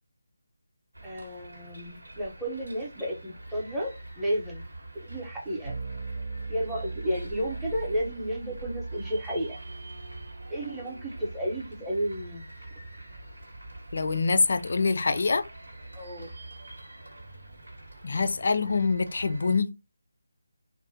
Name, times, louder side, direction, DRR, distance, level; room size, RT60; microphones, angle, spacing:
sound 1, 0.9-19.6, right 1 dB, 85° right, 1.0 m, -45 dB
voice 1, 1.0-4.6 5.0-5.7 6.5-9.6 10.5-12.5 15.9-16.3, equal, 5° right, 0.7 m, -32 dB
sound 2, 5.6-15.7, right 3 dB, 65° right, 0.8 m, -42 dB
voice 2, 13.9-15.4 18.0-19.7, left 4 dB, 55° left, 0.3 m, -25 dB
2.5 x 2.1 x 2.6 m
figure-of-eight pair, 160°, 0 cm